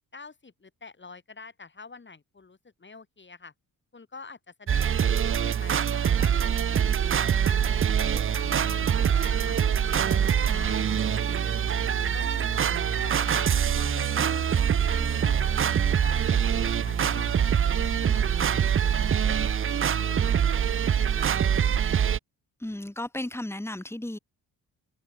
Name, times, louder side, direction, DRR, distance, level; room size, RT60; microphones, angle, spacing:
voice 1, 0.1-3.5 3.9-6.3 6.6-6.8 7.2-7.8 8.1-9.6 9.9-11.8 12.1-14.6 14.9-16.5 16.8-19.7 20.1-21.4, left 4 dB, 30° left, 4.4 m, -47 dB
sound 1, 4.7-22.2, right 8 dB, 35° right, 0.6 m, -24 dB
sound 2, 7.2-19.6, left 10 dB, 65° left, 2.7 m, -47 dB
voice 2, 10.4-10.7 22.6-24.2, left 1 dB, 5° left, 3.8 m, -35 dB
cardioid pair, 80°, 37 cm